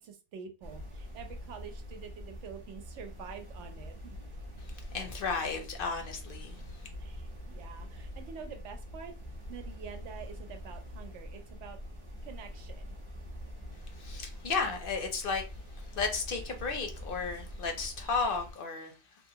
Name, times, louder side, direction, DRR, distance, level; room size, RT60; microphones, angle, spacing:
voice 1, 0.0-4.2 7.0-9.2 9.5-11.8 12.2-12.9, right 7 dB, 80° right, 6 dB, 0.9 m, -47 dB
sound 1, 0.6-18.5, left 1 dB, 30° right, 0.7 m, -44 dB
voice 2, 4.9-6.6 14.0-15.4 15.8-18.9, left 4 dB, 60° left, 5 dB, 0.7 m, -33 dB
2.8 x 2.4 x 2.7 m, 0.33 s
omnidirectional pair, 1.2 m